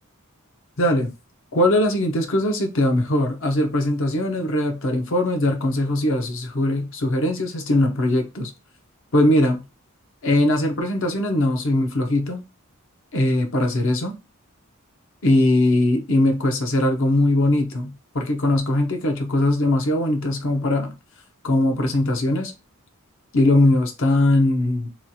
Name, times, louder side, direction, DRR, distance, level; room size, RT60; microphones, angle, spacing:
voice 1, 0.8-1.1 1.5-8.5 9.1-9.6 10.2-12.4 13.1-14.1 15.2-21.0 21.4-22.5 23.3-24.9, left 1 dB, 65° left, 0.7 m, -20 dB
3.0 x 2.3 x 2.7 m
head